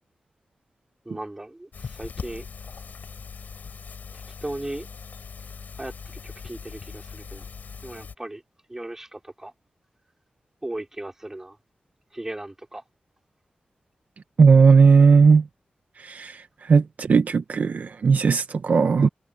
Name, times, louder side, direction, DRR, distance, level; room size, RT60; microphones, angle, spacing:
voice 1, 1.0-2.4 4.4-4.9 5.8-5.9 6.2-7.4 7.8-8.4 8.7-9.5 10.6-11.6 12.1-12.8, right 1 dB, 15° right, 4.4 m, -36 dB
sound 1, 1.7-8.2, left 5 dB, 90° left, 3.9 m, -40 dB
voice 2, 14.4-15.4 16.0-19.1, right 5 dB, 65° right, 0.9 m, -17 dB
wide cardioid pair, 140°, 3 cm